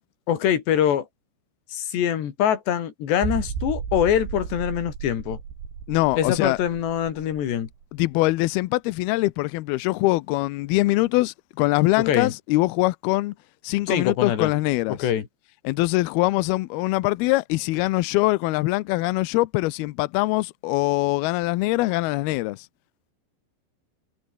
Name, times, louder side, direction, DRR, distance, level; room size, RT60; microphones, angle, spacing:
voice 1, 0.3-1.1 1.7-5.4 6.2-7.7 12.0-12.3 13.9-14.5 14.9-15.3, left 10 dB, 65° left, 4.7 m, -23 dB
sound 1, 3.2-8.7 9.0-9.1 9.6-9.7, right 7 dB, 75° right, 6.6 m, -34 dB
voice 2, 5.9-6.6 7.9-13.3 13.6-15.0 15.6-22.7, left 20 dB, 85° left, 2.2 m, -23 dB
omnidirectional pair, 5.4 m